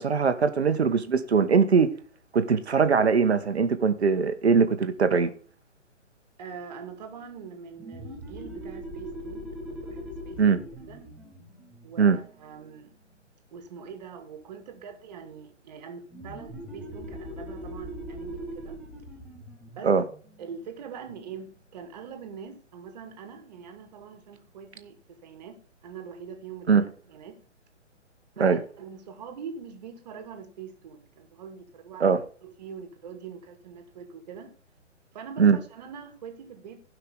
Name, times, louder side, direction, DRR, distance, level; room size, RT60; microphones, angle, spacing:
voice 1, 0.0-1.9 2.3-5.3 10.4-10.6 12.0-12.2 19.8-20.0 26.7-26.8 28.4-28.6 32.0-32.2 35.4-35.6, right 5 dB, 60° right, 1.5 m, -21 dB
voice 2, 6.4-10.6 10.9-11.0 11.8-12.9 13.5-18.8 19.7-19.9 20.4-27.4 28.4-34.5 35.1-36.9, right 6 dB, 35° right, 2.2 m, -43 dB
sound 1, 7.8-13.1 16.1-21.4, equal, ahead, 1.1 m, -41 dB
17.0 x 5.8 x 3.6 m
figure-of-eight pair, 130°, 37 cm